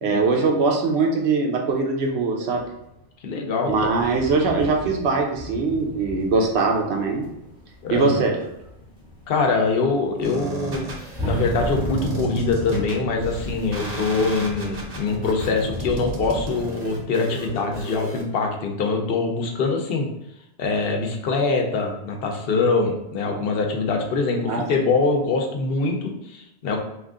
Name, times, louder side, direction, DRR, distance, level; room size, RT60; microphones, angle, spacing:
voice 1, 0.0-2.6 3.7-7.3 7.9-8.3 24.5-24.7, right 4 dB, 75° right, 2 dB, 0.9 m, -22 dB
sound 1, 2.5-3.0 3.6-16.8, equal, 5° right, 0.7 m, -34 dB
voice 2, 3.2-3.9 7.8-8.3 9.3-10.9 11.2-20.1 20.6-26.8, left 3 dB, 65° left, 2 dB, 0.8 m, -23 dB
sound 2, 10.2-18.2, right 3 dB, 45° right, 0.7 m, -34 dB
2.9 x 2.5 x 3.5 m, 0.84 s
omnidirectional pair, 1.1 m